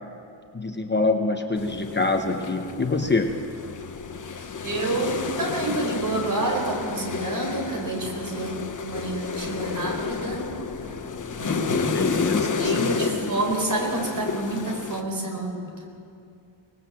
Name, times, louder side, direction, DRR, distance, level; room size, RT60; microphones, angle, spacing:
voice 1, 0.5-3.4 11.7-13.3, left 3 dB, 25° left, 4 dB, 1.0 m, -25 dB
sound 1, 1.6-15.0, left 5 dB, 40° left, 1.2 m, -31 dB
voice 2, 4.6-8.6 8.8-10.4 11.4-15.9, right 2 dB, 45° right, 1 dB, 4.5 m, -29 dB
24.5 x 19.5 x 7.6 m, 2.5 s
wide cardioid pair, 165°, 46 cm